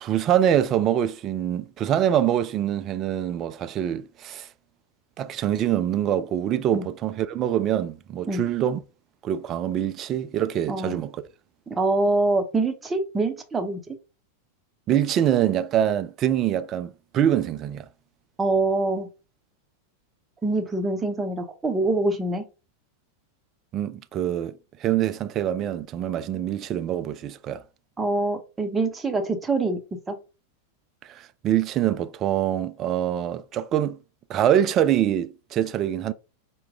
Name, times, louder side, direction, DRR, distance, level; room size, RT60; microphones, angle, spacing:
voice 1, 0.0-4.5 5.2-8.8 9.2-11.1 14.9-17.9 23.7-27.6 31.0-34.0 34.3-36.1, right 10 dB, 30° right, 0.3 m, -24 dB
voice 2, 11.7-14.0 18.4-19.1 20.4-22.4 28.0-29.8 30.1-30.2, right 2 dB, 15° right, 0.8 m, -25 dB
4.5 x 2.2 x 3.5 m
figure-of-eight pair, 90°, 0 cm